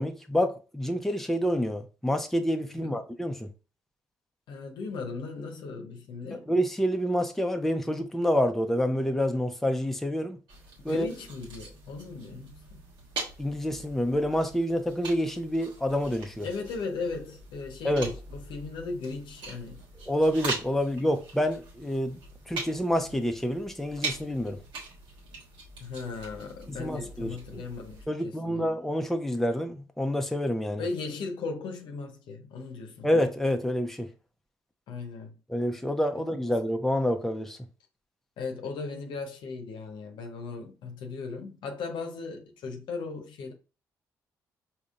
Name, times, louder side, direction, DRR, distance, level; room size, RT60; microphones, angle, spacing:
voice 1, 0.0-3.5 6.3-10.4 10.8-11.1 13.4-16.5 17.8-18.1 20.1-22.2 22.5-24.6 26.7-27.6 28.1-30.8 33.0-34.1 35.5-37.6, equal, 5° left, 0.7 m, -28 dB
voice 2, 4.5-6.5 10.9-12.8 16.4-19.8 25.8-28.7 30.8-33.1 34.9-35.4 38.4-43.5, left 4 dB, 70° left, 0.8 m, -37 dB
sound 1, 10.5-28.0, right 3 dB, 65° right, 1.3 m, -42 dB
4.9 x 2.8 x 2.5 m
hypercardioid pair, 45°, 8 cm